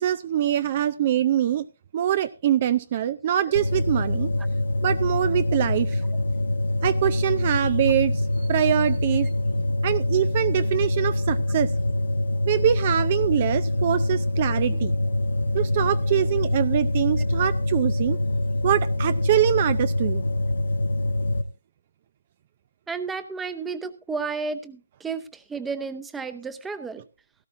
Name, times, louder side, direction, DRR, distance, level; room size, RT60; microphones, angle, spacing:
voice 1, 0.0-1.7 1.9-4.3 4.8-6.0 6.8-9.3 9.8-11.7 12.5-14.9 15.5-18.2 18.6-20.2, right 11 dB, 35° right, 15 dB, 0.5 m, -24 dB
sound 1, 3.6-21.4, left 1 dB, 80° left, 1.3 m, -25 dB
voice 2, 22.9-27.0, right 4 dB, 5° right, 12 dB, 0.9 m, -32 dB
17.0 x 14.0 x 2.6 m, 0.31 s
hypercardioid pair, 155°, 0 cm